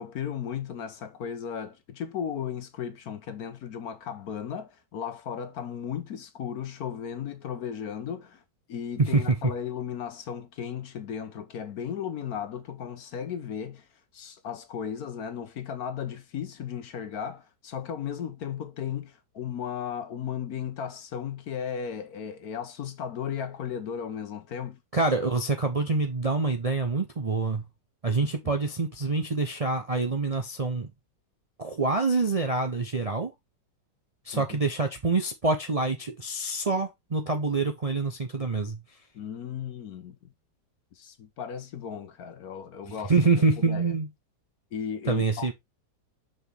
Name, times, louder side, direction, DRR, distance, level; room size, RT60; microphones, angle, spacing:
voice 1, 0.0-8.4 8.7-13.9 14.1-24.8 34.3-34.6 39.1-40.2 40.9-43.9 44.7-45.5, left 8 dB, 65° left, 1.2 m, -35 dB
voice 2, 9.0-9.4 24.9-27.6 28.0-30.9 31.6-33.3 34.2-38.8 42.9-44.1 45.1-45.5, right 3 dB, 70° right, 0.3 m, -26 dB
6.1 x 5.3 x 3.4 m
omnidirectional pair, 1.9 m